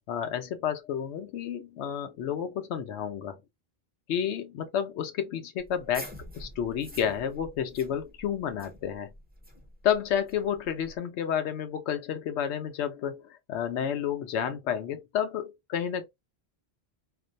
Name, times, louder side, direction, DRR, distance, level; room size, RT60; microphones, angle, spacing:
voice 1, 0.0-3.4 4.1-9.1 9.8-16.1, left 8 dB, 90° left, 0.9 m, -31 dB
sound 1, 5.6-11.0, equal, 10° right, 0.5 m, -47 dB
2.5 x 2.0 x 2.5 m
omnidirectional pair, 1.1 m